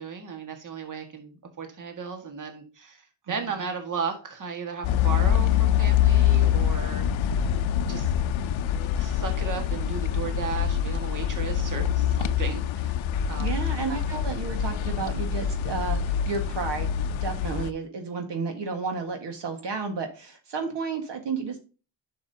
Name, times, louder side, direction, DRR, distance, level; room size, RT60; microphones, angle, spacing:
voice 1, 0.0-3.0 3.3-7.1 7.9-8.1 8.4-8.6 8.9-12.9 13.3-13.6 14.1-14.2, right 5 dB, 40° right, 4 dB, 1.8 m, -35 dB
sound 1, 4.8-17.7, left 9 dB, 80° left, 0.7 m, -25 dB
voice 2, 13.4-21.6, right 4 dB, 65° right, 3 dB, 1.8 m, -32 dB
10.5 x 6.0 x 2.8 m, 0.35 s
cardioid pair, 110°, 46 cm